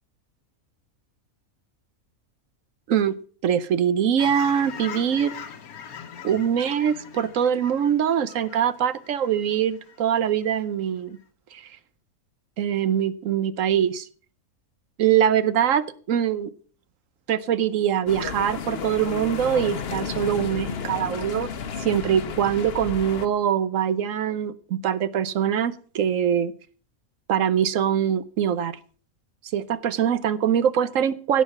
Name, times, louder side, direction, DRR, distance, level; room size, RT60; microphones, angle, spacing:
voice 1, 3.4-5.3 6.2-11.2 11.5-11.6 12.6-14.1 15.0-16.5 17.3-21.5 21.8-26.5 27.3-28.8 29.5-31.4, right 9 dB, 65° right, 15 dB, 1.1 m, -23 dB
Fowl / Chirp tweet, 4.2-10.0 10.4-10.7, left 7 dB, 80° left, 1.6 m, -41 dB
sound 1, 18.1-23.3, left 6 dB, 50° left, 1.0 m, -32 dB
16.5 x 6.4 x 6.8 m, 0.43 s
omnidirectional pair, 1.5 m